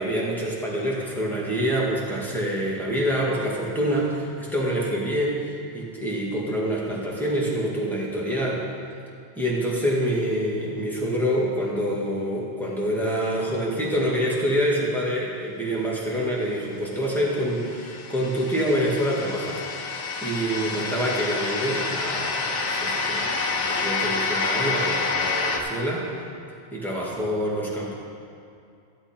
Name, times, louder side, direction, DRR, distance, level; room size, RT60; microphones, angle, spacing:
voice 1, 0.0-5.5 5.7-8.6 9.4-19.6 20.2-26.1 26.7-27.9, equal, ahead, -5 dB, 1.9 m, -26 dB
sound 1, 17.2-25.6, left 4 dB, 80° left, 1.3 m, -28 dB
13.5 x 7.7 x 4.5 m, 2.5 s
omnidirectional pair, 1.2 m